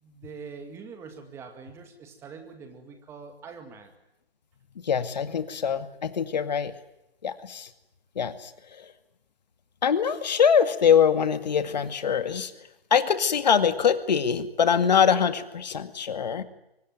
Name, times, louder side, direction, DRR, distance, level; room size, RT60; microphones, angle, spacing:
voice 1, 0.0-3.9, right 5 dB, 10° right, 6 dB, 2.2 m, -44 dB
voice 2, 4.9-6.7 7.2-7.7 8.2-8.5 9.8-12.5 12.9-16.4, left 7 dB, 45° left, 10 dB, 2.2 m, -23 dB
24.5 x 24.0 x 9.3 m, 0.89 s
figure-of-eight pair, 150°, 30 cm